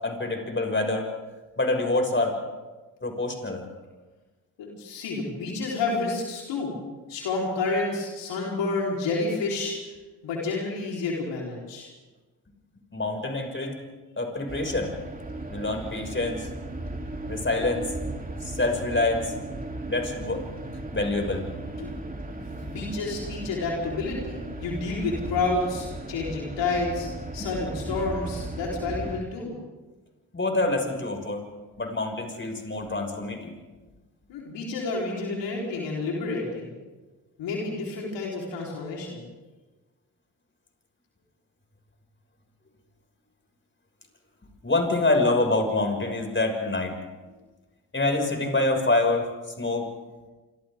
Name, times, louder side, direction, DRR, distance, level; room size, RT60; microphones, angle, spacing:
voice 1, 0.0-1.1 1.6-2.3 3.0-3.7 12.9-13.7 14.2-14.9 15.5-16.5 17.3-17.8 18.4-19.3 19.9-20.4 20.9-21.4 22.3-22.4 27.4-27.5 30.3-31.4 31.8-33.5 44.6-46.9 47.9-49.3 49.6-49.8, left 2 dB, 25° left, 3 dB, 6.5 m, -26 dB
voice 2, 4.6-6.8 7.1-9.9 10.2-11.9 21.8-22.1 22.6-29.6 34.3-36.7 37.4-39.2, left 3 dB, 75° left, -2 dB, 4.5 m, -30 dB
sound 1, 14.5-29.2, right 2 dB, 20° right, 3.4 m, -36 dB
27.5 x 25.5 x 3.8 m, 1.2 s
hypercardioid pair, 45°, 43 cm